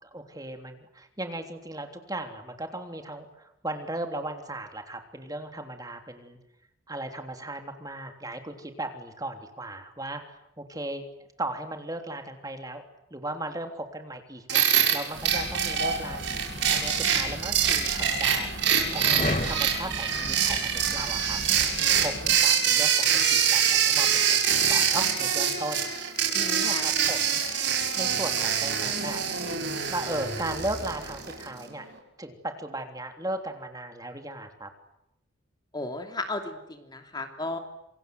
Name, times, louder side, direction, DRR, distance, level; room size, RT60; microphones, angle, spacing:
voice 1, 0.0-6.4 6.9-11.0 11.4-12.8 13.1-18.6 18.9-21.4 21.8-27.4 27.7-29.2 29.8-31.8 32.2-34.7, right 1 dB, 20° right, 5 dB, 3.3 m, -37 dB
sound 1, 14.5-31.5, right 8 dB, 65° right, 7.0 m, -25 dB
sound 2, 15.1-22.5, left 1 dB, 35° left, 2.4 m, -36 dB
voice 2, 35.7-37.6, left 2 dB, 20° left, 5 dB, 3.0 m, -34 dB
27.5 x 26.0 x 8.0 m, 0.84 s
head